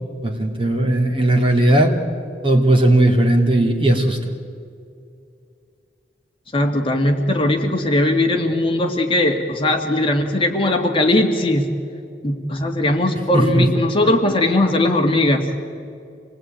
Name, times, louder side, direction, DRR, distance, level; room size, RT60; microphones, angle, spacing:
voice 1, 0.2-1.9 2.4-4.3 13.3-13.7, right 1 dB, 30° right, 3 dB, 2.7 m, -16 dB
voice 2, 6.5-11.6 12.2-15.5, left 1 dB, 30° left, 2 dB, 2.2 m, -19 dB
27.0 x 20.0 x 9.1 m, 2.4 s
head